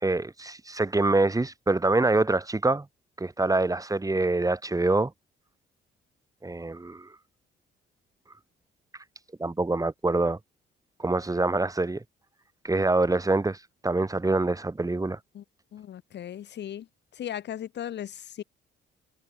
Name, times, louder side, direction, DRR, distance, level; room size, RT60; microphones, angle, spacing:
voice 1, 0.0-2.9 3.2-5.1 6.4-7.1 9.4-10.4 11.0-12.0 12.6-13.6 13.8-15.2, right 2 dB, 15° right, 3.9 m, -25 dB
voice 2, 15.7-16.9 17.2-18.4, left 10 dB, 60° left, 1.2 m, -37 dB
cardioid pair, 90°, 20 cm